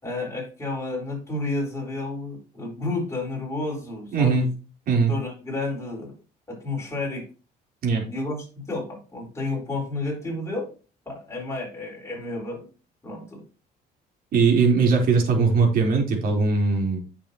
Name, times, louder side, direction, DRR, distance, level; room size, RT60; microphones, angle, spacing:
voice 1, 0.0-4.5 5.1-6.2 6.5-7.3 8.1-10.7 11.1-12.7 13.0-13.4, left 2 dB, 15° left, -1 dB, 4.3 m, -31 dB
voice 2, 4.1-4.5 4.9-5.1 7.8-8.0 14.3-17.0, right 4 dB, 60° right, 1 dB, 3.6 m, -20 dB
9.3 x 7.0 x 2.9 m, 0.34 s
cardioid pair, 110°, 17 cm